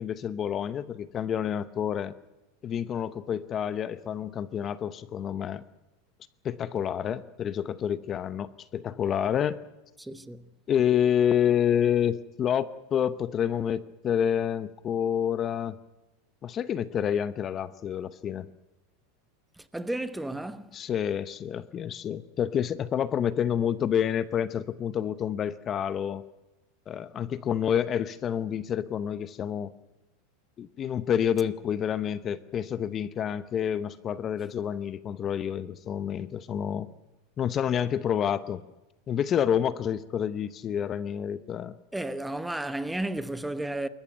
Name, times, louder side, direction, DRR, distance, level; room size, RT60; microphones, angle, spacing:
voice 1, 0.0-2.1 2.6-5.6 6.4-9.6 10.7-15.7 16.4-18.5 20.7-26.2 26.9-29.7 30.6-36.9 37.4-38.6 39.1-41.8, left 9 dB, 25° left, 0.8 m, -28 dB
voice 2, 10.0-10.5 19.6-20.7 41.9-43.9, right 1 dB, 5° right, 0.9 m, -33 dB
27.5 x 14.5 x 9.1 m
supercardioid pair, 150°, 0 cm